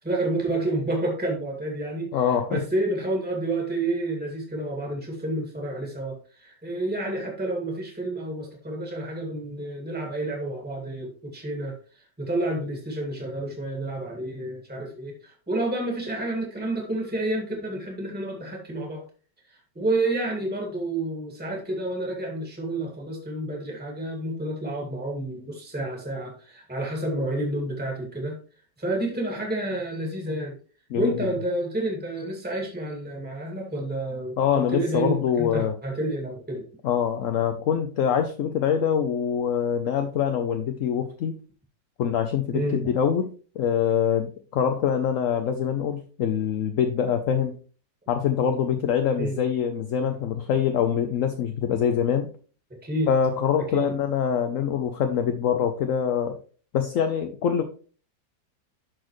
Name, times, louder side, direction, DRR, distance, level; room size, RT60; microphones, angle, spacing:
voice 1, 0.0-2.2 2.5-11.8 12.2-19.0 19.8-28.4 28.8-30.6 30.9-36.7 42.5-42.9 49.2-49.4 52.7-53.1 53.7-53.9, right 1 dB, 5° right, 0 dB, 1.9 m, -29 dB
voice 2, 2.1-2.6 30.9-31.1 34.4-35.8 36.8-41.3 42.0-43.3 43.6-47.6 48.1-52.3 53.1-56.4 56.7-57.6, left 8 dB, 60° left, 7 dB, 0.9 m, -24 dB
12.5 x 4.3 x 3.1 m, 0.40 s
omnidirectional pair, 1.8 m